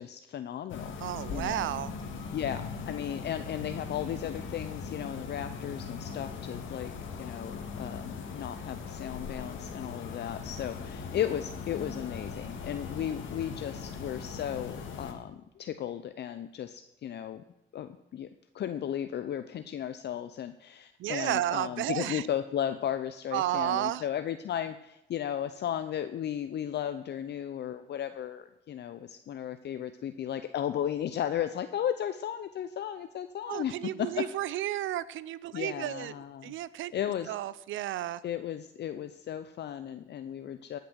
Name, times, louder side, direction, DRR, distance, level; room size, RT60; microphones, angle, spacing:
voice 1, 0.0-0.9 1.3-1.7 2.3-6.9 7.2-17.4 17.7-18.3 18.5-34.2 35.5-36.5 36.9-37.4 38.2-40.8, left 10 dB, 60° left, 10 dB, 0.6 m, -35 dB
sound 1, 0.7-15.1, left 5 dB, 75° left, 1.8 m, -40 dB
voice 2, 1.0-1.9 21.0-22.2 23.3-24.0 33.5-36.1 36.4-36.9 37.3-38.2, right 13 dB, 75° right, 18 dB, 0.6 m, -32 dB
18.0 x 6.8 x 6.3 m, 0.88 s
cardioid pair, 90°, 20 cm